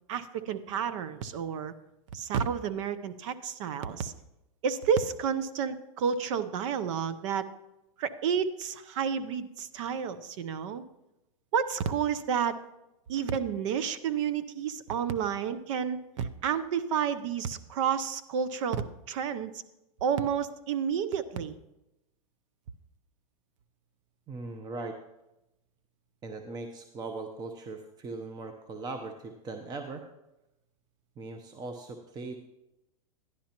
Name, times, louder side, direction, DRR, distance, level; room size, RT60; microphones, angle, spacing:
voice 1, 0.1-1.7 2.1-4.1 4.6-7.5 8.0-10.8 11.5-12.6 13.1-18.8 19.1-19.5 20.0-21.6, right 7 dB, 60° right, 13 dB, 0.6 m, -30 dB
voice 2, 24.3-25.0 26.2-30.0 31.2-32.3, right 3 dB, 20° right, 5 dB, 0.7 m, -39 dB
11.5 x 10.5 x 2.9 m, 0.93 s
hypercardioid pair, 125°, 18 cm